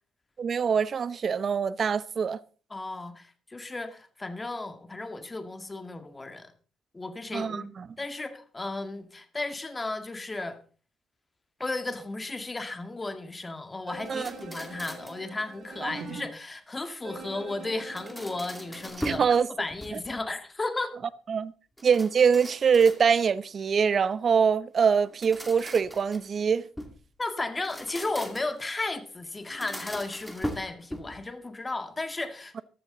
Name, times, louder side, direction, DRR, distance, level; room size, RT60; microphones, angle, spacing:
voice 1, 0.4-2.4 7.3-7.9 14.1-14.3 15.8-15.9 19.0-19.5 19.9-20.0 21.3-21.5 21.8-26.7, right 6 dB, 50° right, 0.7 m, -24 dB
voice 2, 2.7-6.5 6.9-7.7 8.0-10.6 11.6-19.3 19.6-20.9 27.2-32.6, left 2 dB, 20° left, 1.9 m, -34 dB
sound 1, 13.9-16.3 17.0-18.9, right 4 dB, 65° right, 6.9 m, -43 dB
sound 2, 14.1-15.3 17.7-19.3 19.7-20.3 21.8-23.4 25.0-27.0 27.5-28.7 29.4-31.3, equal, ahead, 2.4 m, -40 dB
15.0 x 12.0 x 3.9 m
cardioid pair, 90°, 0 cm